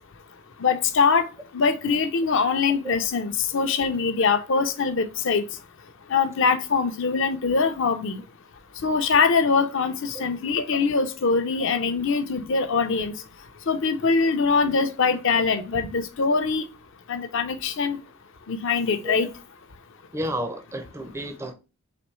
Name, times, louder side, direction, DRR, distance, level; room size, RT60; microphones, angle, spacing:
voice 1, 0.6-1.3 1.5-5.4 6.1-8.2 8.8-13.1 13.7-16.6 17.1-18.0 18.5-19.3, left 5 dB, 60° left, 0.6 m, -23 dB
voice 2, 20.1-21.5, equal, 10° right, 0.4 m, -31 dB
4.1 x 3.0 x 3.1 m
head